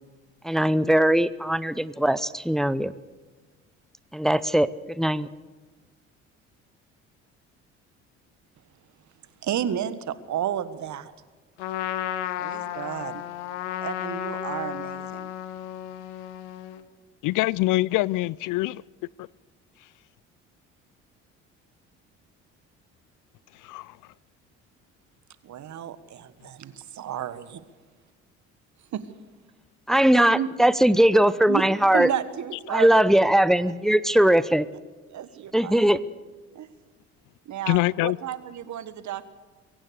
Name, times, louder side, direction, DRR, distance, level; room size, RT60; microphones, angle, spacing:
voice 1, 0.4-2.9 4.1-4.7 5.0-5.3 29.9-32.1 32.7-34.7 35.5-36.0, right 1 dB, ahead, 0.8 m, -20 dB
voice 2, 9.4-11.1 12.4-13.2 13.8-15.3 25.4-27.6 28.9-29.0 30.3-30.5 31.5-31.6 31.9-33.0 35.1-35.8 36.5-36.7 37.4-39.3, right 10 dB, 55° right, 1.5 m, -32 dB
Trumpet, 11.6-16.8, left 12 dB, 80° left, 1.3 m, -33 dB
voice 3, 17.2-18.8 19.2-19.3 23.6-24.0 37.7-38.2, left 19 dB, 60° left, 0.5 m, -24 dB
23.0 x 17.0 x 6.7 m
hypercardioid pair, 55°, 35 cm